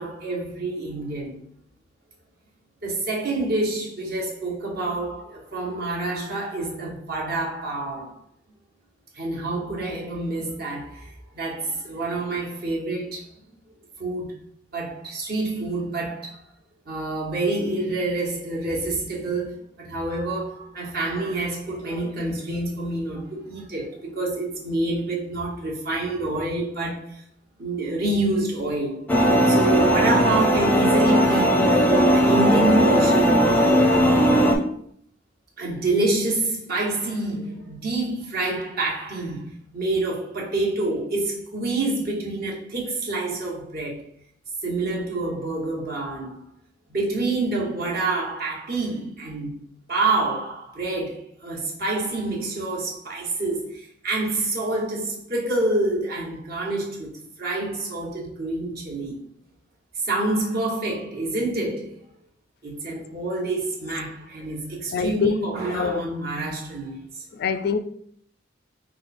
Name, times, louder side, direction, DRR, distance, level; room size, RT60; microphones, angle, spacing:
voice 1, 0.0-1.4 2.8-8.2 9.1-13.3 14.0-14.4 14.7-16.4 16.8-27.2 27.6-29.0 29.5-34.6 35.6-44.0 44.6-46.4 46.9-49.6 49.9-57.1 57.4-59.2 60.0-62.0 62.6-67.2, right 2 dB, 55° right, 1.4 m, -27 dB
sound 1, 29.1-34.5, equal, 10° left, 0.6 m, -18 dB
voice 2, 64.9-65.3 65.7-66.0 67.3-67.8, left 6 dB, 55° left, 0.4 m, -24 dB
5.2 x 2.3 x 4.2 m
head